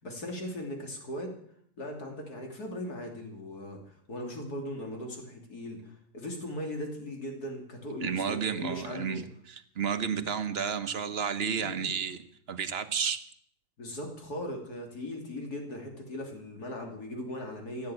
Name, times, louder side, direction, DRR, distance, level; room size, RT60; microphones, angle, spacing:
voice 1, 0.0-1.4 1.8-9.2 11.6-11.9 13.8-17.9, left 1 dB, 65° left, 2 dB, 3.5 m, -39 dB
voice 2, 8.0-9.2 9.5-12.2 12.5-13.2, right 7 dB, 45° right, 10 dB, 1.0 m, -31 dB
15.5 x 8.7 x 8.8 m, 0.65 s
omnidirectional pair, 1.8 m